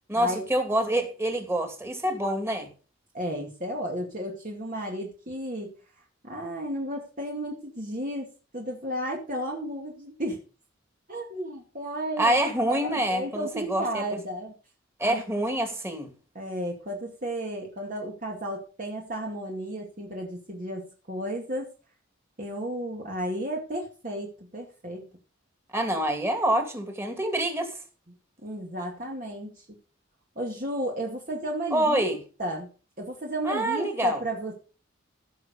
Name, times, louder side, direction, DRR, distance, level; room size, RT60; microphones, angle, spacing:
voice 1, 0.1-2.7 12.2-14.1 15.0-16.1 25.7-27.7 31.7-32.2 33.4-34.2, right 1 dB, 15° right, 2.6 m, -26 dB
voice 2, 3.1-5.7 6.2-8.3 8.5-10.4 11.1-12.4 12.7-14.5 15.0-15.2 16.3-21.7 22.4-25.1 28.4-29.6 30.4-32.1 32.4-32.7 33.0-34.5, right 1 dB, 45° right, 2.3 m, -33 dB
16.5 x 6.6 x 5.4 m
head